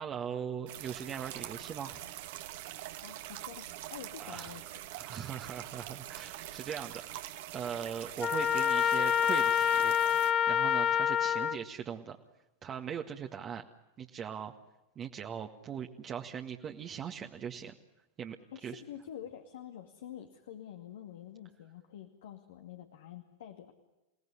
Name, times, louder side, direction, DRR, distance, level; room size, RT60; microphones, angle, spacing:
voice 1, 0.0-2.0 4.2-4.5 4.9-10.0 10.5-12.2 12.6-13.7 14.0-14.5 15.0-17.8 18.2-18.4 18.6-18.8, right 8 dB, 30° right, 3 dB, 1.7 m, -40 dB
sound 1, 0.7-10.3, right 14 dB, 60° right, 1.9 m, -44 dB
voice 2, 1.5-2.1 3.0-4.8 18.5-23.7, left 10 dB, 70° left, 6 dB, 2.3 m, -48 dB
Trumpet, 8.2-11.6, left 8 dB, 30° left, 1.0 m, -27 dB
28.5 x 17.5 x 9.9 m, 1.0 s
hypercardioid pair, 100°, 0 cm